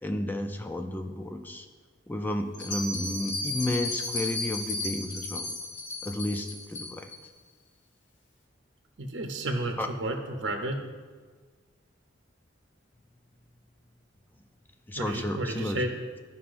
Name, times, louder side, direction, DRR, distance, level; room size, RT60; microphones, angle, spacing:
voice 1, 0.0-1.7 2.1-5.5 6.0-7.1 9.8-9.9 14.9-15.8, left 1 dB, 10° left, 5 dB, 0.4 m, -32 dB
Bell, 2.5-7.2, left 2 dB, 70° left, 1.6 m, -34 dB
voice 2, 9.0-10.8 14.9-15.9, right 1 dB, 70° right, 3 dB, 0.8 m, -32 dB
15.0 x 5.4 x 2.6 m, 1.5 s
head